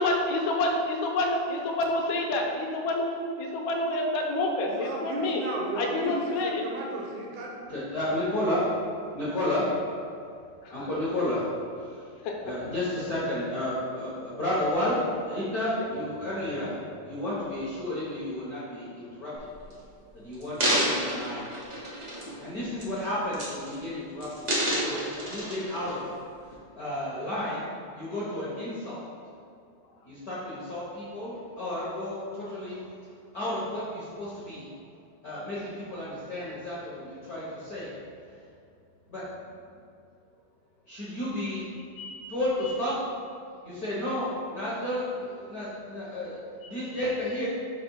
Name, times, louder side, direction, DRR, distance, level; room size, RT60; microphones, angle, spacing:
voice 1, 0.0-5.4 5.8-6.6 10.6-10.9 12.2-12.3 42.0-42.2 42.7-42.8, left 2 dB, 85° left, 0 dB, 2.0 m, -28 dB
voice 2, 4.6-7.5, right 1 dB, 80° right, -1 dB, 2.4 m, -34 dB
voice 3, 7.7-8.7 9.1-9.8 10.7-11.5 11.8-12.1 12.4-19.7 20.1-21.5 22.1-26.1 26.4-29.0 30.1-32.8 33.3-34.6 35.2-37.9 38.3-38.4 39.1-39.2 40.9-41.6 42.3-42.9 43.6-46.4 46.6-47.4, left 1 dB, 55° left, -9 dB, 1.1 m, -32 dB
Rolling Dice, 19.4-19.7 20.3-22.4 22.8-23.0 23.3-23.9 24.2-25.9 26.5-26.6, right 1 dB, 60° right, 0.7 m, -29 dB
5.9 x 3.1 x 5.5 m, 2.4 s
omnidirectional pair, 3.3 m